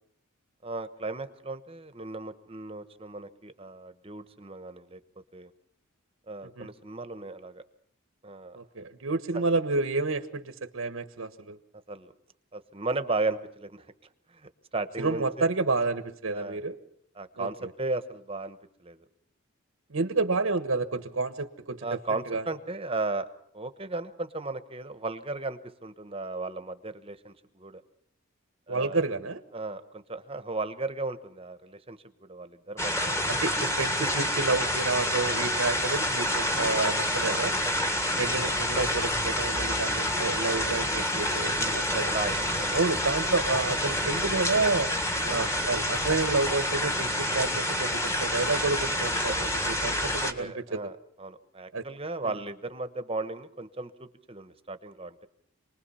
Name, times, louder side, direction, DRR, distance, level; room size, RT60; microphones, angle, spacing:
voice 1, 0.6-5.0 5.3-5.5 6.3-7.6 8.2-8.6 11.9-12.1 12.5-13.8 14.3-15.5 16.3-16.6 17.2-19.0 21.8-23.3 23.5-27.8 28.7-29.0 29.5-33.2 36.5-37.8 41.5-42.8 49.3-49.4 50.3-50.9 51.2-55.3, right 3 dB, 30° right, 11 dB, 1.2 m, -36 dB
voice 2, 8.5-11.6 15.0-16.8 17.4-17.7 19.9-22.4 28.7-29.4 33.3-37.5 38.2-42.1 42.7-44.9 45.2-50.9 51.7-51.9 52.2-52.3, right 3 dB, 80° right, 9 dB, 1.3 m, -30 dB
sound 1, 32.8-50.3, left 1 dB, 15° left, 1.8 m, -28 dB
27.5 x 20.0 x 5.7 m, 0.66 s
head